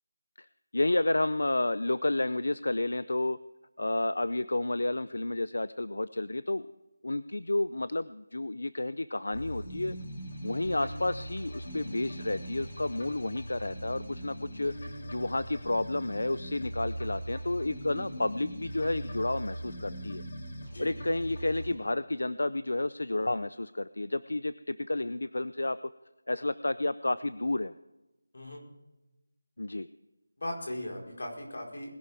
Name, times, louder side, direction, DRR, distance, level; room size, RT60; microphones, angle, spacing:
voice 1, 0.7-3.4 3.8-6.6 7.0-10.0 10.4-14.7 15.1-20.2 20.8-25.8 26.3-27.7 29.6-29.9, left 2 dB, 70° left, 15 dB, 0.5 m, -31 dB
sound 1, 9.3-21.7, equal, 30° left, 2.2 m, -40 dB
voice 2, 20.6-21.0 28.3-28.6 30.4-31.9, left 1 dB, 50° left, 0 dB, 4.4 m, -38 dB
21.0 x 11.5 x 3.5 m, 1.0 s
figure-of-eight pair, 180°, 0 cm